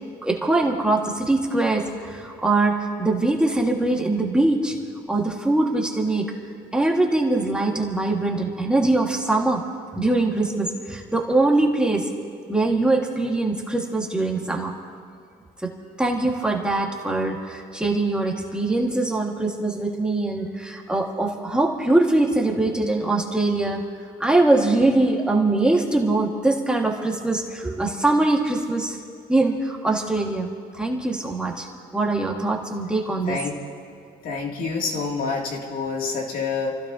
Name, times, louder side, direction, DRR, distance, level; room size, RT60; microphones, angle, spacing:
voice 1, 0.2-4.8 5.1-6.3 6.7-9.6 9.9-12.1 12.5-14.8 15.6-23.8 24.2-29.0 29.3-31.7 31.9-33.4, right 2 dB, 5° right, -1 dB, 1.7 m, -22 dB
voice 2, 34.2-36.8, left 4 dB, 55° left, 0 dB, 2.5 m, -27 dB
28.5 x 15.5 x 2.8 m, 2.3 s
cardioid pair, 110°, 17 cm